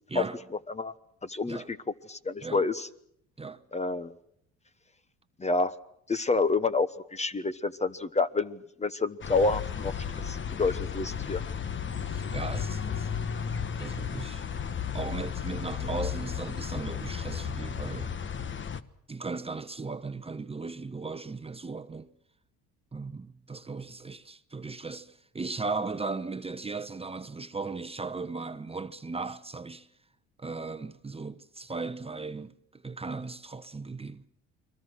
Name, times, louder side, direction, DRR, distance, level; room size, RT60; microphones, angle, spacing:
voice 1, 0.1-0.4 1.5-1.7 2.4-2.6 3.4-3.6 12.1-13.1 13.8-14.5 14.9-18.1 19.1-22.1 22.9-29.9 30.4-34.2, right 4 dB, 20° right, 1.0 m, -37 dB
voice 2, 1.2-1.8 2.1-2.9 3.7-4.1 5.4-5.7 6.1-11.4, left 3 dB, 20° left, 1.1 m, -28 dB
sound 1, 9.2-18.8, left 7 dB, 35° left, 1.2 m, -34 dB
29.5 x 22.0 x 6.3 m
supercardioid pair, 80°, 32 cm